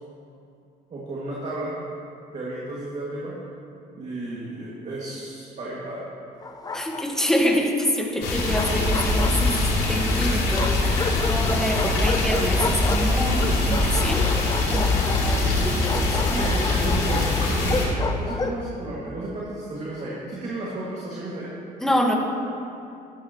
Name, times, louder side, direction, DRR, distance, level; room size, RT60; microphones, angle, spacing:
voice 1, 0.9-1.8 2.3-3.4 4.0-6.0 15.4-15.6 16.3-21.5, right 2 dB, 40° right, -6 dB, 2.1 m, -33 dB
Bark, 6.4-7.3 8.2-9.8 10.5-18.7, left 3 dB, 20° left, 0.6 m, -31 dB
voice 2, 6.7-14.5 14.7-16.4 21.8-22.2, equal, 5° left, 1 dB, 1.4 m, -27 dB
sound 1, 8.2-17.8, left 2 dB, 85° left, 2.8 m, -23 dB
13.5 x 12.0 x 3.0 m, 2.6 s
cardioid pair, 110°, 17 cm